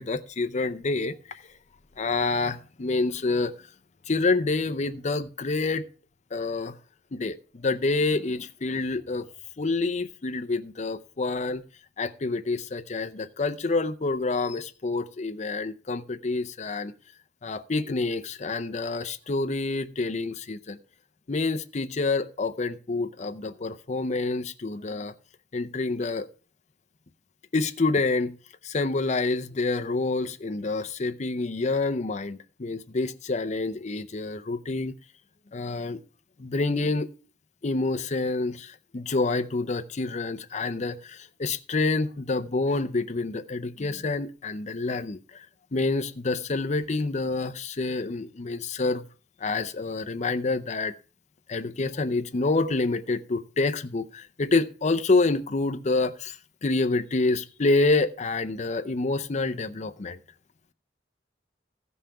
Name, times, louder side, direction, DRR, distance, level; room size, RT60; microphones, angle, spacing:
voice 1, 0.0-1.4 2.0-3.5 4.1-5.8 6.3-6.7 7.1-9.3 9.6-11.6 12.0-16.9 17.4-20.8 21.3-25.1 25.5-26.3 27.5-28.3 28.6-34.9 35.5-36.0 36.4-37.1 37.6-45.5 45.7-49.0 49.4-50.9 51.5-56.4 56.6-60.2, left 3 dB, 40° left, 0.6 m, -27 dB
14.5 x 5.6 x 5.6 m
head